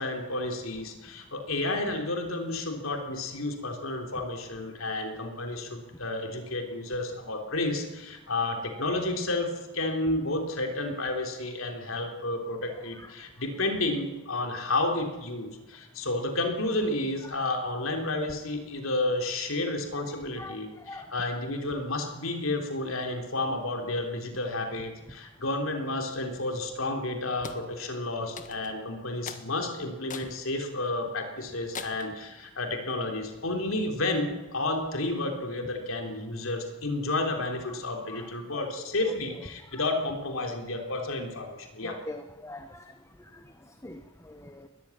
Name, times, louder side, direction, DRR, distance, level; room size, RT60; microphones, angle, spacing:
voice 1, 0.0-42.0, left 2 dB, 75° left, 4 dB, 3.5 m, -31 dB
voice 2, 19.9-20.6 20.9-21.1 28.3-28.4 38.1-39.8 41.8-42.9 43.8-44.0 44.2-44.7, left 2 dB, 15° left, 8 dB, 1.2 m, -44 dB
sound 1, 27.4-27.7 28.4-28.8 29.3-29.5 30.1-30.4 30.9-31.0 31.7-32.1, left 5 dB, 40° left, 1.6 m, -40 dB
21.0 x 14.5 x 9.8 m, 1.0 s
head